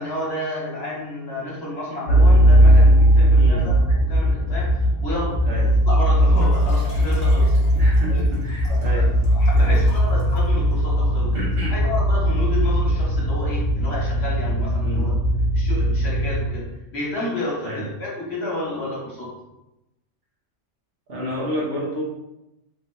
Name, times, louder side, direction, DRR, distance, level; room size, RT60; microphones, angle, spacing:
voice 1, 0.0-7.5 8.1-8.2 8.7-15.1 15.5-16.6 16.9-19.3, left 1 dB, 60° left, -5 dB, 1.2 m, -31 dB
sound 1, 2.1-16.5, equal, 85° left, 1.0 m, -18 dB
voice 2, 3.3-3.7 5.4-5.6 7.7-9.1 9.5-9.8 11.3-11.8 14.8-15.0 17.6-17.8 21.1-22.0, equal, 55° right, -5 dB, 1.1 m, -30 dB
Liquid, 6.4-10.9 11.6-11.7, left 1 dB, 30° left, 0.9 m, -42 dB
3.1 x 2.6 x 2.2 m, 0.93 s
omnidirectional pair, 1.2 m